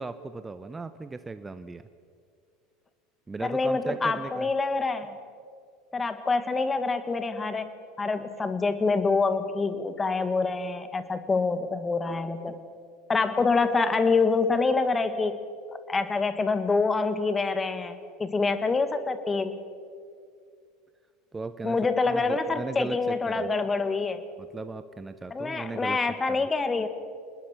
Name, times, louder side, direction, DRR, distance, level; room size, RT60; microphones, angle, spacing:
voice 1, 0.0-1.8 3.3-4.5 21.3-21.8 22.0-23.5 24.4-26.0 26.4-26.5, right 3 dB, 15° right, 12 dB, 0.8 m, -37 dB
voice 2, 3.4-5.1 5.9-7.7 8.0-12.6 13.1-15.4 15.7-19.6 21.6-24.2 25.3-26.9, left 4 dB, 20° left, 11 dB, 1.8 m, -26 dB
26.0 x 20.5 x 5.9 m, 2.3 s
hypercardioid pair, 75°, 0 cm